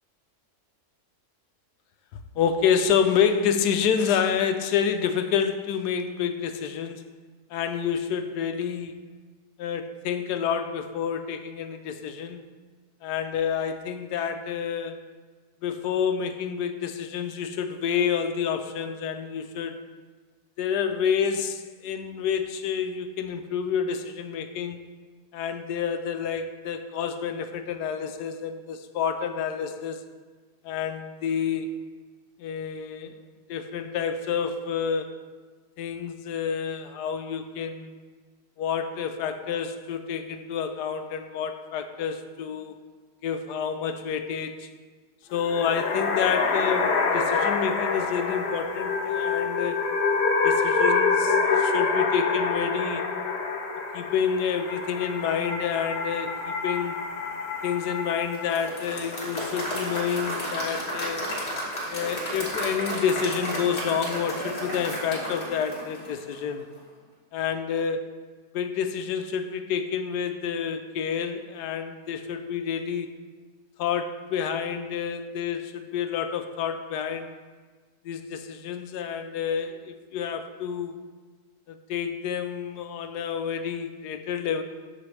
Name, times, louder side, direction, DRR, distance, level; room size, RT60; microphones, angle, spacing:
voice 1, 2.4-7.0 7.5-9.0 9.6-12.4 13.0-15.0 15.6-19.8 20.6-24.8 25.3-30.0 30.6-31.7 32.4-33.1 33.5-35.1 35.8-37.9 38.6-42.7 43.2-44.7 45.3-49.8 50.4-53.0 53.9-57.0 57.6-61.2 61.9-66.7 67.3-68.1 68.5-73.1 73.8-77.3 78.0-80.9 81.7-84.6, left 7 dB, 90° left, 8 dB, 1.2 m, -28 dB
sound 1, 45.3-58.7, left 4 dB, 55° left, 0.7 m, -26 dB
Applause / Crowd, 58.3-66.5, equal, 40° left, 1.8 m, -32 dB
13.0 x 4.9 x 3.3 m, 1.4 s
omnidirectional pair, 1.7 m